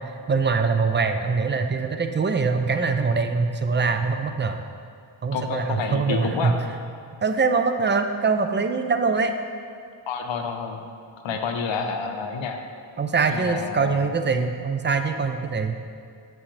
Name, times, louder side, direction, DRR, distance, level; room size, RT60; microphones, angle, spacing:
voice 1, 0.3-4.6 5.2-6.5 7.2-9.3 13.0-15.8, right 4 dB, 25° right, 7 dB, 0.4 m, -23 dB
voice 2, 5.3-6.6 10.1-10.8 11.2-12.6 13.3-14.0, left 5 dB, 70° left, 4 dB, 0.8 m, -29 dB
7.2 x 6.1 x 3.2 m, 2.3 s
cardioid pair, 80°, 47 cm